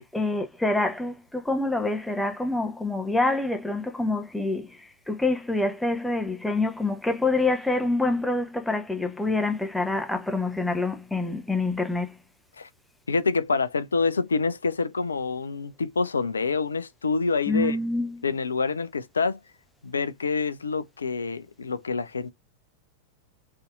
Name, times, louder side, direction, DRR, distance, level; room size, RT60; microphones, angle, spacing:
voice 1, 0.0-12.2 17.5-18.2, left 2 dB, 5° left, 0.6 m, -26 dB
voice 2, 13.1-17.8 18.2-19.4 19.8-22.3, left 4 dB, 75° left, 0.3 m, -27 dB
3.3 x 2.7 x 2.3 m
figure-of-eight pair, 90°, 0 cm